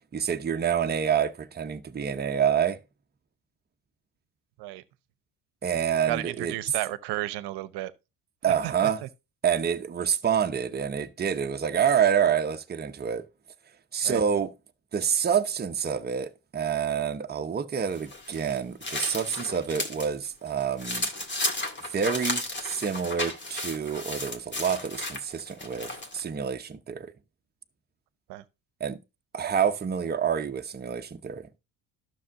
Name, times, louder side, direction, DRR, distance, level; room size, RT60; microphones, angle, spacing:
voice 1, 0.1-2.8 5.6-6.5 8.4-9.0 9.4-13.3 13.9-14.5 14.9-21.1 21.9-27.1 28.8-29.0 29.3-31.5, right 8 dB, 25° right, 0.8 m, -27 dB
voice 2, 6.1-7.9 8.4-9.1 14.0-14.2 28.3-28.4, right 16 dB, 65° right, 0.9 m, -33 dB
sound 1, 17.9-20.1 20.5-26.2, left 2 dB, 25° left, 2.0 m, -34 dB
12.0 x 6.3 x 2.6 m
supercardioid pair, 70°, 43 cm